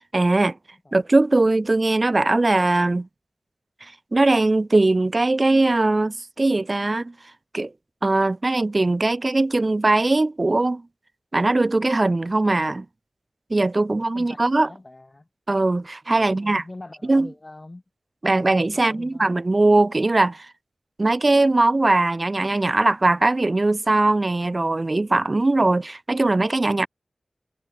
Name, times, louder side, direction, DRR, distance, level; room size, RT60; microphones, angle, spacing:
voice 1, 0.1-0.6 0.9-3.1 3.8-7.1 7.5-7.7 8.0-10.8 11.3-12.9 13.5-14.7 15.5-16.6 17.1-17.3 18.2-20.5 21.0-26.9, right 2 dB, 40° right, 0.7 m, -20 dB
voice 2, 13.9-15.3 16.1-17.8 18.7-19.3, left 2 dB, 35° left, 3.8 m, -43 dB
wide cardioid pair, 70°, 0 cm